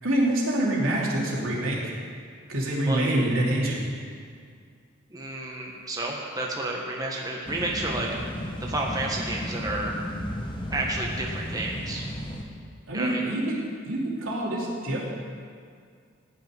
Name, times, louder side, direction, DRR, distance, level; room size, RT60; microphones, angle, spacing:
voice 1, 0.0-1.9 2.5-3.8 8.6-8.7 12.9-13.6 13.8-15.1, right 1 dB, 85° right, -4 dB, 3.0 m, -26 dB
voice 2, 5.1-8.1 8.6-9.9 10.7-12.0 12.9-13.3, right 2 dB, 20° right, -2 dB, 1.3 m, -31 dB
sound 1, 7.4-12.4, equal, 20° left, 1.1 m, -34 dB
16.0 x 5.7 x 9.5 m, 2.1 s
head